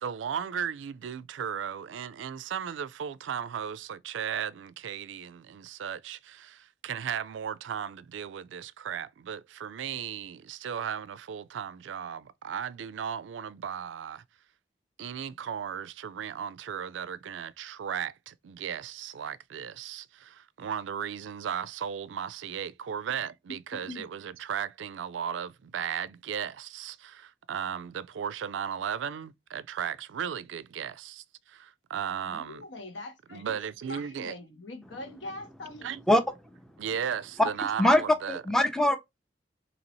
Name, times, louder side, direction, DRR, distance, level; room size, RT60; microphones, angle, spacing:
voice 1, 0.0-14.2 15.0-32.6 33.3-34.3 35.8-36.0 36.8-38.4, right 8 dB, 80° right, 0.4 m, -36 dB
voice 2, 23.5-24.0 32.2-33.6 33.9-35.9, left 2 dB, 80° left, 1.3 m, -42 dB
voice 3, 38.3-39.0, left 1 dB, 5° left, 0.5 m, -22 dB
4.1 x 2.8 x 2.9 m
head